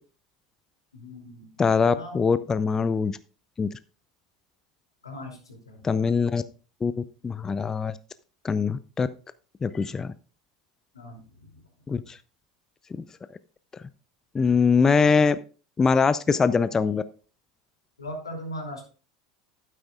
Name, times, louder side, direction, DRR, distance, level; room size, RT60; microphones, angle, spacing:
voice 1, 0.9-1.5 1.8-2.3 5.0-5.8 10.9-11.7 18.0-18.9, equal, 85° left, 1 dB, 2.9 m, -39 dB
voice 2, 1.6-3.2 3.6-3.7 5.8-6.4 6.8-6.9 7.2-7.9 8.4-9.1 9.6-10.1 11.9-12.2 12.9-13.0 14.3-15.4 15.8-17.0, left 5 dB, 20° left, 15 dB, 0.4 m, -22 dB
12.0 x 9.2 x 2.4 m, 0.37 s
figure-of-eight pair, 80°, 3 cm